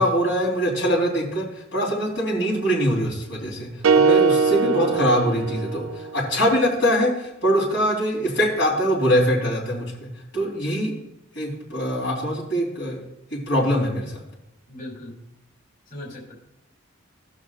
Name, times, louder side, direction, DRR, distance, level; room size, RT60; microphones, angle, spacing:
voice 1, 0.0-5.9 6.1-10.1 10.3-10.9 11.4-13.0 13.3-14.2, equal, 65° left, -5 dB, 3.6 m, -23 dB
sound 1, 3.8-6.2, right 5 dB, 90° right, 0.4 m, -20 dB
voice 2, 4.6-5.0 14.7-15.1 15.9-16.3, left 1 dB, 45° left, -2 dB, 3.6 m, -37 dB
19.0 x 6.5 x 2.5 m, 0.86 s
head